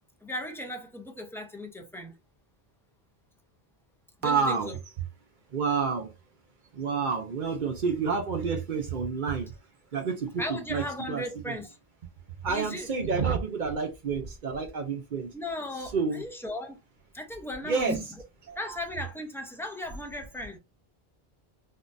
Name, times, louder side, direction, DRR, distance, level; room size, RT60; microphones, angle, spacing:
voice 1, 0.2-2.2 4.2-4.8 10.4-11.8 12.5-13.1 15.3-16.8 17.1-18.2 18.6-20.6, left 1 dB, 5° left, 0.4 m, -37 dB
voice 2, 4.2-4.7 5.5-6.1 6.7-9.5 9.9-10.4 10.7-11.6 12.4-15.3 15.9-16.2 17.6-18.0 18.5-18.6, right 5 dB, 55° right, 0.7 m, -29 dB
3.7 x 2.4 x 2.5 m
omnidirectional pair, 1.0 m